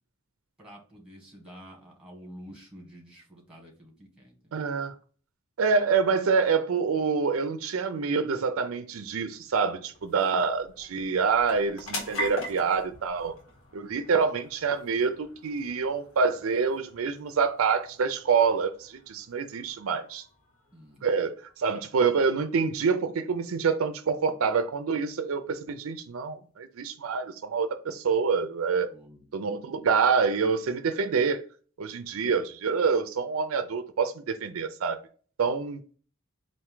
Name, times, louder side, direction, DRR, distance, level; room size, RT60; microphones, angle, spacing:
voice 1, 0.6-4.7 20.7-21.1 28.9-29.3, equal, 5° right, 1.5 m, -49 dB
voice 2, 4.5-4.9 5.6-13.3 13.7-20.2 21.0-21.3 21.6-28.9 29.3-31.4 31.8-35.0 35.4-35.8, right 5 dB, 75° right, 0.5 m, -26 dB
sound 1, 8.5-23.3, left 1 dB, 70° left, 1.5 m, -44 dB
4.4 x 2.6 x 3.7 m
head